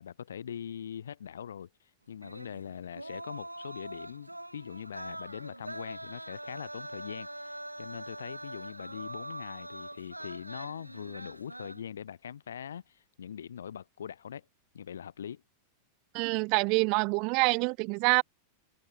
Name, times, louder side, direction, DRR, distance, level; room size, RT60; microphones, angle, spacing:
voice 1, 0.0-14.4 14.7-15.4, left 8 dB, 65° left, 4.0 m, -42 dB
sound 1, 2.2-11.8, right 1 dB, 85° right, 1.2 m, -43 dB
voice 2, 16.1-18.2, right 32 dB, 45° right, 1.6 m, -26 dB
figure-of-eight pair, 90°, 0 cm